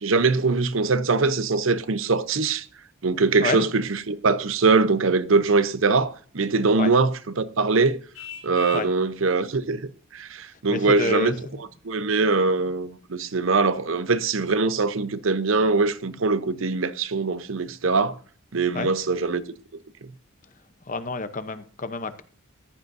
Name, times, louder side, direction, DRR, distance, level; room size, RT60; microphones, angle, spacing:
voice 1, 0.0-2.6 3.0-8.0 8.4-11.3 11.6-18.2 18.5-19.4 20.0-20.1, right 4 dB, 70° right, 0.8 m, -22 dB
Vehicle horn car horn honking, 8.1-9.0, left 7 dB, 80° left, 1.6 m, -40 dB
voice 2, 10.7-11.6 18.7-18.9 20.9-22.2, left 3 dB, 40° left, 0.8 m, -29 dB
14.5 x 10.5 x 2.6 m
head